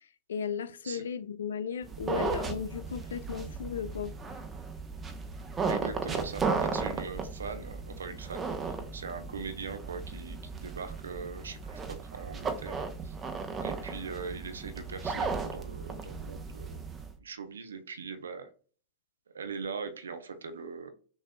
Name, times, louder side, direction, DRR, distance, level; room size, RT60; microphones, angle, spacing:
voice 1, 0.3-4.1, left 7 dB, 65° left, 0.4 m, -35 dB
sound 1, 1.8-17.1, right 4 dB, 20° right, 0.9 m, -35 dB
voice 2, 5.6-13.2 13.6-16.8 17.2-18.5 19.3-20.9, right 5 dB, 70° right, 0.6 m, -41 dB
6.2 x 3.3 x 2.2 m
figure-of-eight pair, 90°, 0 cm